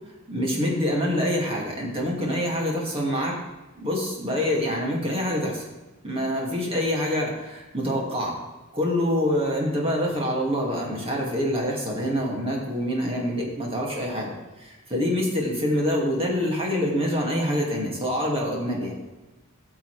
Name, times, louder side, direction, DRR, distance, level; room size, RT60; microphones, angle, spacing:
voice 1, 0.3-3.4 3.7-5.6 6.0-8.4 8.7-14.3 14.6-18.9, equal, 25° right, -2 dB, 2.2 m, -26 dB
14.0 x 6.9 x 3.3 m, 1.1 s
head